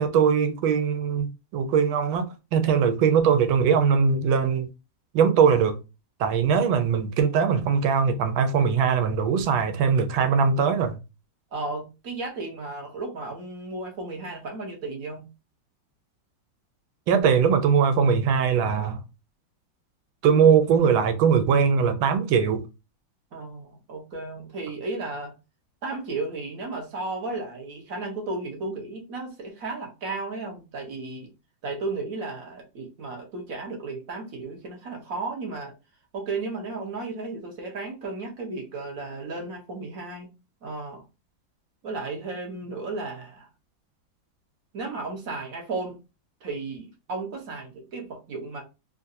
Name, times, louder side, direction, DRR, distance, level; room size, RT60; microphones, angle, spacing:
voice 1, 0.0-4.7 5.1-5.8 6.2-11.0 17.1-19.0 20.2-22.6, right 6 dB, 90° right, 1.4 m, -21 dB
voice 2, 11.5-15.3 23.3-25.3 25.8-31.3 31.6-35.7 36.1-40.3 40.6-41.0 41.8-43.5 44.7-46.0 46.4-48.6, right 3 dB, 50° right, 1.3 m, -34 dB
3.8 x 2.5 x 2.6 m
omnidirectional pair, 2.1 m